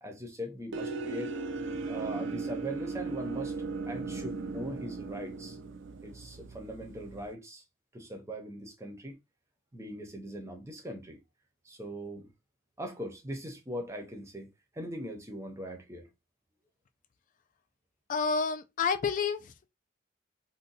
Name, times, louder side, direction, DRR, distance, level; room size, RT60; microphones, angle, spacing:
voice 1, 0.0-1.4 1.9-3.5 3.9-5.6 6.0-7.6 7.9-9.1 9.7-11.2 11.6-12.3 12.8-14.5 14.7-16.1, equal, 15° right, 0.6 m, -40 dB
sound 1, 0.7-7.3, right 3 dB, 65° right, 0.4 m, -37 dB
voice 2, 18.1-19.7, left 5 dB, 40° left, 0.3 m, -30 dB
2.6 x 2.2 x 3.9 m
head